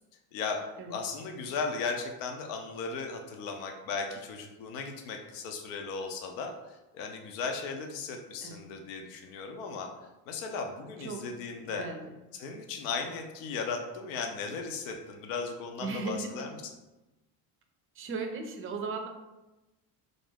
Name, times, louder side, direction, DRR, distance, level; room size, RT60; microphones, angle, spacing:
voice 1, 0.3-9.9 10.3-11.8 12.3-16.7, left 4 dB, 80° left, 3 dB, 0.6 m, -36 dB
voice 2, 11.8-12.1 15.8-16.5 18.0-19.1, right 4 dB, 30° right, 4 dB, 0.4 m, -36 dB
2.6 x 2.1 x 3.3 m, 1.0 s
supercardioid pair, 85°, 47 cm